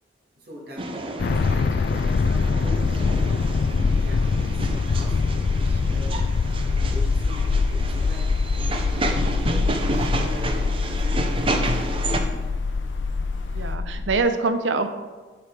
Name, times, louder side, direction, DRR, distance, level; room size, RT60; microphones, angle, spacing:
voice 1, 0.4-2.8 3.9-6.3 6.9-8.5 9.5-12.6, equal, 55° right, -4 dB, 2.5 m, -41 dB
sound 1, 0.8-12.2, right 2 dB, 30° right, 0.6 m, -31 dB
sound 2, 1.2-14.2, left 4 dB, 55° left, 0.3 m, -23 dB
sound 3, 2.8-13.8, left 2 dB, 85° left, 0.8 m, -42 dB
voice 2, 9.3-9.8 13.5-14.9, right 3 dB, 80° right, 8 dB, 0.7 m, -26 dB
10.5 x 4.7 x 4.8 m, 1.4 s
head